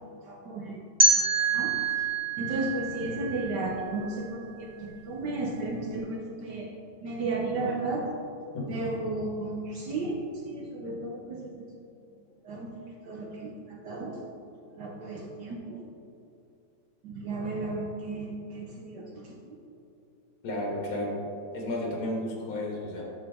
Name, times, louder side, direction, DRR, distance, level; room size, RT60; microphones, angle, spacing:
voice 1, 0.3-0.8 1.1-1.2 1.5-1.8 2.4-6.7 7.0-8.1 8.7-11.6 12.4-14.2 14.7-15.8 17.0-19.6, right 2 dB, 65° right, -1 dB, 1.3 m, -34 dB
sound 1, 1.0-3.9, right 3 dB, 30° right, 0.8 m, -26 dB
voice 2, 20.4-21.2 21.5-23.0, left 1 dB, 85° left, -2 dB, 2.4 m, -32 dB
8.8 x 6.8 x 3.6 m, 2.7 s
omnidirectional pair, 2.2 m